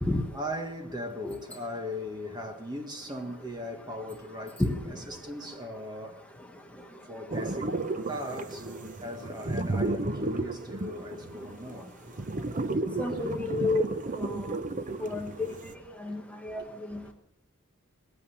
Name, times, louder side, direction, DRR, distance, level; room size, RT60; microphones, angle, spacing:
voice 1, 0.3-6.2 7.1-8.7 9.0-11.9 15.0-15.1 16.0-16.2 16.5-17.1, equal, 20° right, 1.6 m, -39 dB
sound 1, 7.3-15.7, right 2 dB, 35° right, 0.8 m, -33 dB
voice 2, 13.0-13.8 14.2-14.4 15.0-15.5 16.0-16.6 16.9-17.0, left 2 dB, 5° left, 1.3 m, -30 dB
19.0 x 8.6 x 7.3 m
head